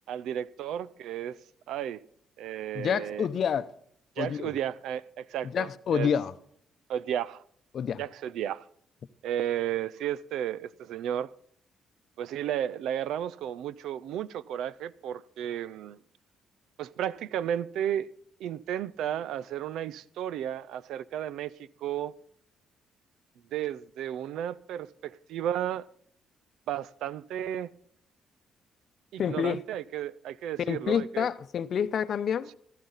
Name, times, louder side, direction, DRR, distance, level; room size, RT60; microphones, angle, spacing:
voice 1, 0.1-1.4 1.7-2.0 2.4-3.3 4.2-6.1 6.9-7.4 8.0-8.6 9.2-11.3 12.2-16.0 16.8-18.1 18.4-22.1 23.5-25.9 26.7-27.7 29.1-31.3, right 10 dB, 85° right, 0.4 m, -33 dB
voice 2, 2.7-3.7 4.2-4.5 5.4-6.3 7.7-8.0 29.2-29.6 30.7-32.5, left 7 dB, 60° left, 0.7 m, -28 dB
15.5 x 13.5 x 4.0 m
cardioid pair, 90°, 0 cm